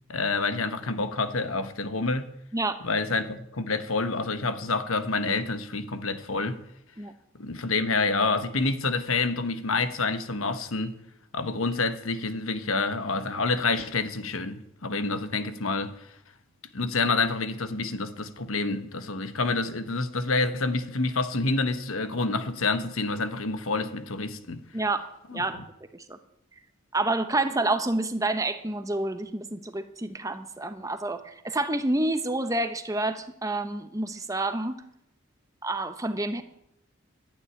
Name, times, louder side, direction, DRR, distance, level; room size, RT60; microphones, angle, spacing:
voice 1, 0.1-2.3 2.8-6.6 7.4-11.0 11.3-16.1 16.7-24.6 25.3-25.4, left 3 dB, 80° left, 1.2 m, -28 dB
voice 2, 26.9-34.8 35.6-36.4, right 2 dB, 15° right, 0.9 m, -28 dB
12.0 x 9.7 x 9.9 m
head